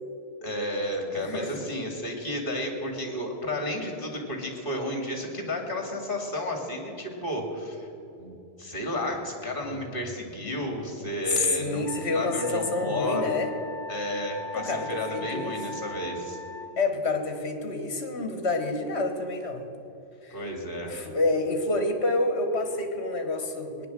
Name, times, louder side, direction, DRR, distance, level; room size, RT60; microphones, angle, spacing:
voice 1, 0.4-7.9 8.2-11.9 12.1-13.3 13.9-16.4 20.3-21.0, left 1 dB, 45° left, 3 dB, 2.7 m, -32 dB
voice 2, 1.1-1.6 9.7-9.9 11.0-13.5 14.5-15.6 16.8-19.6 20.2-20.4 20.9-23.9, left 2 dB, 65° left, 6 dB, 1.9 m, -28 dB
Wind instrument woodwind instrument, 11.8-16.7, equal, 20° left, 1.5 m, -40 dB
18.0 x 10.0 x 7.6 m, 2.9 s
omnidirectional pair, 1.2 m